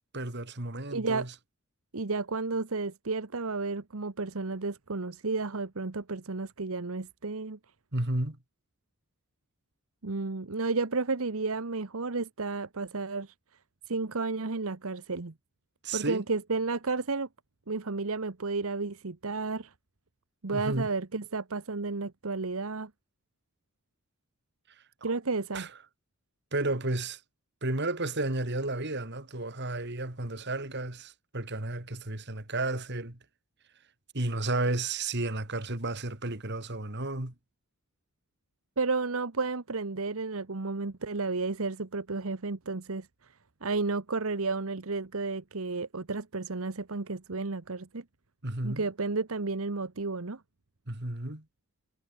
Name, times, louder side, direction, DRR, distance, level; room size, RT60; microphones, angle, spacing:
voice 1, 0.1-1.3 7.9-8.4 15.8-16.2 20.5-20.9 25.5-25.7 26.5-27.2 27.6-33.2 34.1-37.3 48.4-48.8 50.9-51.4, right 2 dB, 50° right, 2.9 m, -32 dB
voice 2, 0.9-1.3 1.9-7.6 10.0-13.3 13.9-15.3 15.9-17.3 17.7-19.7 20.4-22.9 25.0-25.7 38.8-43.3 43.6-48.0 48.6-50.4, right 3 dB, 70° right, 1.1 m, -32 dB
head